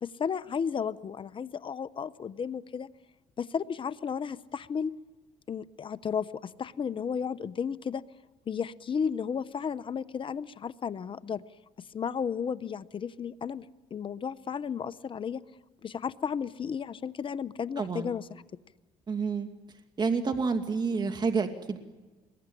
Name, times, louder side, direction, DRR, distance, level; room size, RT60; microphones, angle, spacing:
voice 1, 0.0-2.9 3.4-4.9 5.5-8.0 8.5-11.4 11.9-13.7 13.9-15.4 15.8-18.4, left 7 dB, 40° left, 16 dB, 0.9 m, -33 dB
voice 2, 17.8-18.1 19.1-19.5 20.0-21.8, right 5 dB, 35° right, 6 dB, 2.2 m, -29 dB
27.0 x 21.5 x 10.0 m, 1.2 s
supercardioid pair, 75°, 13 cm